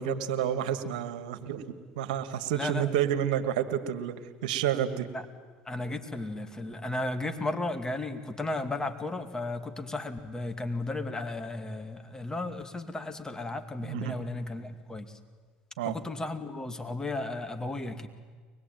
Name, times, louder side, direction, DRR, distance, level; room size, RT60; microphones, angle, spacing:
voice 1, 0.0-4.2 4.4-5.1 13.8-14.1 15.8-15.9, right 10 dB, 80° right, 10 dB, 1.8 m, -30 dB
voice 2, 2.5-2.9 5.1-5.2 5.7-15.1 15.8-18.1, left 2 dB, 15° left, 7 dB, 2.4 m, -34 dB
24.0 x 20.5 x 9.2 m, 1.5 s
hypercardioid pair, 80°, 4 cm